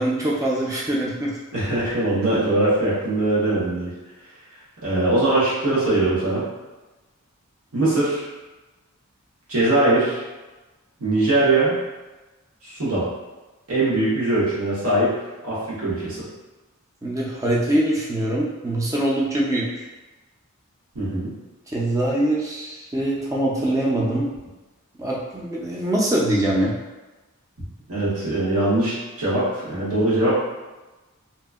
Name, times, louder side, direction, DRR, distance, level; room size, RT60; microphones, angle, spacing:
voice 1, 0.0-1.4 17.0-19.8 21.7-24.3 25.0-26.7, right 1 dB, 15° right, -4 dB, 0.4 m, -23 dB
voice 2, 1.5-3.9 4.8-6.5 7.7-8.3 9.5-10.2 11.0-11.8 12.6-13.1 13.7-15.1 15.4-16.3 20.9-21.3 27.9-30.3, right 2 dB, 80° right, -9 dB, 1.2 m, -21 dB
2.8 x 2.5 x 2.3 m, 1.1 s
head